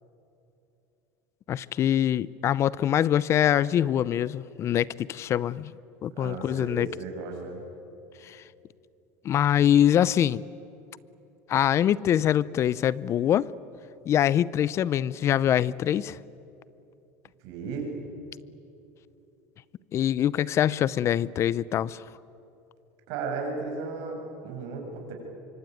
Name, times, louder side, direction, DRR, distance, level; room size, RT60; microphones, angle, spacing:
voice 1, 1.5-5.7 6.0-6.9 8.2-8.4 9.2-10.4 11.5-13.5 14.1-16.2 19.9-22.0, left 10 dB, 40° left, 21 dB, 0.6 m, -24 dB
voice 2, 6.2-7.6 17.4-17.9 23.1-25.1, right 4 dB, 65° right, 2 dB, 7.1 m, -35 dB
25.0 x 24.5 x 9.3 m, 2.8 s
supercardioid pair, 120°, 7 cm